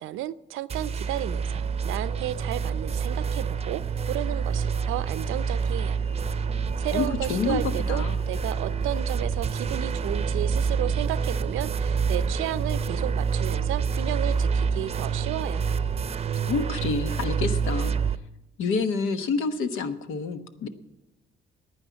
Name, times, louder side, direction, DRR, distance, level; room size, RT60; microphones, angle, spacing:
voice 1, 0.0-6.0 6.8-15.6, right 13 dB, 85° right, 17 dB, 0.5 m, -33 dB
sound 1, 0.7-18.2, right 6 dB, 30° right, 0.6 m, -27 dB
sound 2, 6.2-6.3 6.6-6.8 7.1-7.2 7.5-7.6 7.9-8.0 8.3-8.5 8.8-8.9 9.2-9.8 10.1-10.2 10.5-10.6 10.9-11.0 11.3-11.5 11.8-11.9 12.2-12.3 12.6-12.9, right 2 dB, 5° right, 0.8 m, -38 dB
voice 2, 6.9-7.6 7.9-8.2 16.5-18.0 18.6-20.7, left 4 dB, 85° left, 9 dB, 1.1 m, -28 dB
9.8 x 9.7 x 9.6 m, 0.99 s
cardioid pair, 90°, 20 cm